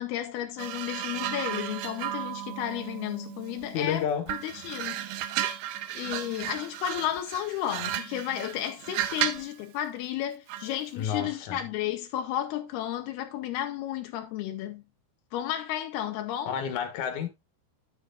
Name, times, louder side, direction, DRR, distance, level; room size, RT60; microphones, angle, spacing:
voice 1, 0.0-5.3 5.9-14.8 15.3-16.6, left 12 dB, 80° left, 2.8 m, -33 dB
sound 1, 0.6-3.8 4.3-9.5 10.5-10.7, right 12 dB, 75° right, 2.2 m, -34 dB
voice 2, 3.7-4.3 11.0-11.6 16.5-17.3, left 8 dB, 60° left, 2.7 m, -30 dB
11.0 x 7.8 x 2.4 m
omnidirectional pair, 4.5 m